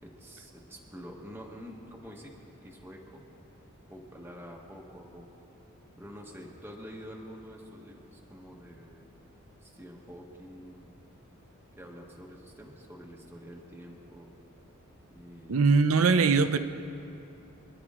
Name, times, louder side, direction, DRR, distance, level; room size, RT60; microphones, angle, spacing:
voice 1, 0.0-3.2 3.9-5.3 6.0-9.1 9.6-11.0 11.8-14.3 15.1-15.8 16.2-16.4, equal, 10° right, -2 dB, 1.3 m, -47 dB
voice 2, 15.5-16.6, right 4 dB, 80° right, 10 dB, 0.6 m, -21 dB
26.0 x 11.0 x 3.8 m, 2.7 s
head